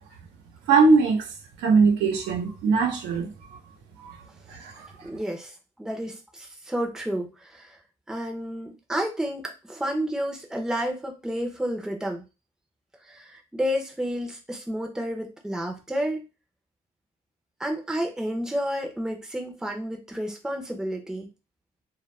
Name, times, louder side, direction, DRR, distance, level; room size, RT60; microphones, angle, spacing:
voice 1, 0.7-1.3 1.6-3.3 4.0-4.2 4.5-5.1, right 4 dB, 90° right, 0.8 m, -21 dB
voice 2, 5.0-7.8 8.1-12.2 13.0-16.3 17.6-21.3, equal, 5° right, 0.6 m, -31 dB
2.3 x 2.1 x 3.1 m
cardioid pair, 110°, 17 cm